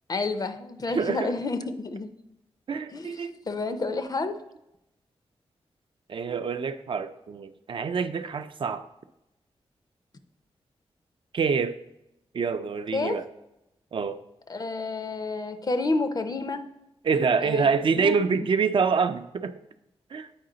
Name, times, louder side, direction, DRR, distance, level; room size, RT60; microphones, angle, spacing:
voice 1, 0.1-2.1 2.9-3.2 3.5-4.4 12.9-13.2 14.5-16.6 17.4-17.7 18.0-18.5, left 3 dB, 40° left, 10 dB, 0.5 m, -29 dB
voice 2, 0.9-1.3 2.7-3.5 6.1-8.8 11.3-11.7 12.3-13.3 13.9-14.2 17.0-19.5 20.1-20.3, right 5 dB, 55° right, 9 dB, 0.4 m, -26 dB
8.6 x 4.8 x 3.9 m, 0.87 s
wide cardioid pair, 145°, 10 cm